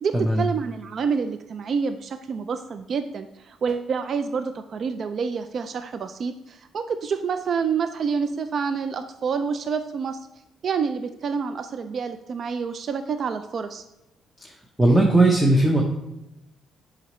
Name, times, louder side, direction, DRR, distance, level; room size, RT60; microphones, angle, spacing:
voice 1, 0.0-10.2 10.6-13.8, right 5 dB, 55° right, 9 dB, 0.4 m, -28 dB
voice 2, 14.8-15.8, right 2 dB, 5° right, 0 dB, 0.9 m, -18 dB
7.8 x 5.1 x 3.1 m, 0.95 s
cardioid pair, 90°, 0 cm